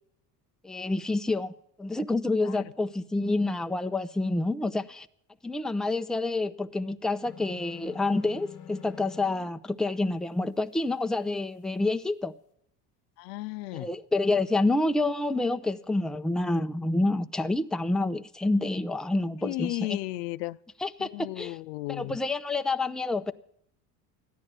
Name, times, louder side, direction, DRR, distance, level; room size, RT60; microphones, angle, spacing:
voice 1, 0.6-1.5 1.8-5.1 5.4-12.3 13.7-20.0 20.8-21.6 21.9-23.3, left 2 dB, ahead, 0.6 m, -28 dB
sound 1, 7.2-9.5, left 9 dB, 40° left, 1.1 m, -46 dB
voice 2, 13.2-13.9 19.4-20.6 21.0-22.2, left 19 dB, 85° left, 0.6 m, -34 dB
14.0 x 10.5 x 7.5 m
supercardioid pair, 80°, 46 cm